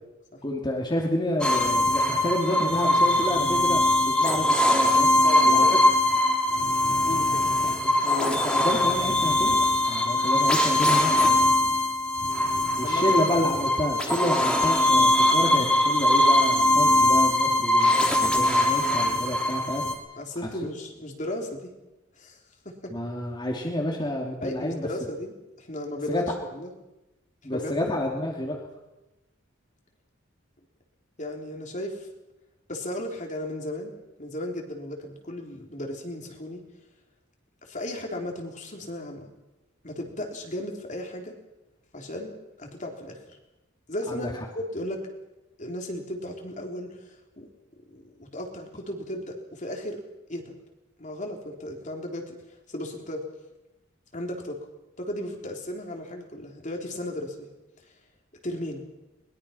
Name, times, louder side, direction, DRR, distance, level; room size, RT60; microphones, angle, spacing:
voice 1, 0.4-5.1 5.4-5.8 7.8-11.5 12.8-19.9 22.9-24.9 26.1-26.2 27.4-28.6 44.1-44.3, left 1 dB, 25° left, -1 dB, 3.2 m, -29 dB
sound 1, 1.4-19.9, left 1 dB, 5° left, 3.4 m, -21 dB
voice 2, 5.2-5.8 7.1-7.5 12.8-13.2 20.2-21.7 22.2-22.4 22.7-22.9 24.4-26.7 27.5-27.7 31.2-32.1 32.7-33.9 34.2-36.6 37.6-39.3 39.8-41.4 41.9-43.2 43.9-45.0 45.6-47.5 47.9-50.0 50.3-50.6 51.0-52.4 52.7-53.2 54.1-54.6 55.0-57.5 58.4-58.8, left 1 dB, 40° left, 2 dB, 3.7 m, -35 dB
22.5 x 22.0 x 5.9 m, 1.0 s
head